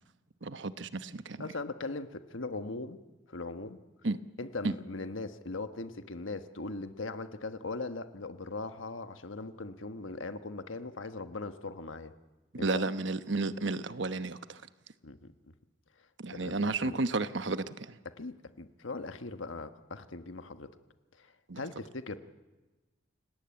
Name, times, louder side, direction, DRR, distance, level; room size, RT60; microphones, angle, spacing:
voice 1, 0.4-1.5 4.0-4.2 4.6-4.7 12.5-14.6 16.2-17.9 21.5-21.6, right 3 dB, 65° right, 12 dB, 1.0 m, -32 dB
voice 2, 1.4-3.0 3.3-3.8 4.4-12.1 12.6-12.9 15.0-15.3 16.3-17.0 18.0-20.8 21.2-22.2, left 3 dB, 80° left, 9 dB, 1.3 m, -40 dB
28.5 x 17.5 x 8.8 m, 1.2 s
head